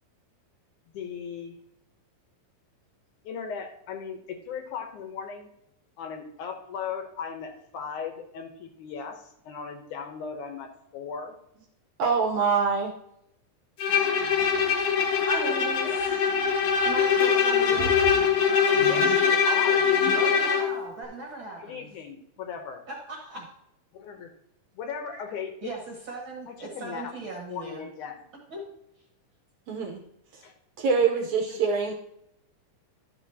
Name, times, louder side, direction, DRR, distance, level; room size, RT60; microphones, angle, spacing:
voice 1, 0.9-1.6 3.3-5.5 6.0-11.4 15.8-16.0 16.3-16.4 17.3-17.4 18.7-20.4 21.6-22.8 23.9-24.3 24.8-25.7 26.5-27.1 27.5-28.2 30.4-30.5 31.5-31.6, left 6 dB, 70° left, 5 dB, 2.1 m, -37 dB
voice 2, 12.0-12.9 23.4-23.5 29.7-30.0 30.8-31.9, right 5 dB, 70° right, 2 dB, 1.9 m, -24 dB
Bowed string instrument, 13.8-20.7, left 6 dB, 90° left, 1.3 m, -22 dB
voice 3, 15.2-16.1 16.8-18.0 20.1-21.9 22.9-23.5 25.6-27.8 28.5-28.7, right 3 dB, 50° right, -1 dB, 1.6 m, -38 dB
12.5 x 7.2 x 2.7 m, 0.78 s
omnidirectional pair, 4.0 m